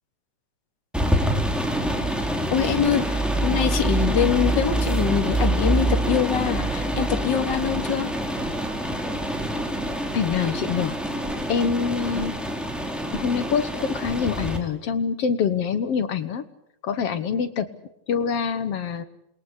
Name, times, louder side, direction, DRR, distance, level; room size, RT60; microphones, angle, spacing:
sound 1, 0.9-14.6, right 1 dB, ahead, 3.6 m, -25 dB
voice 1, 2.5-8.2, left 9 dB, 40° left, 7 dB, 2.3 m, -24 dB
voice 2, 10.1-11.0 11.5-12.3 13.1-16.4 16.8-17.7 18.1-19.0, left 6 dB, 60° left, 11 dB, 2.0 m, -25 dB
28.0 x 21.5 x 8.2 m, 0.80 s
omnidirectional pair, 3.4 m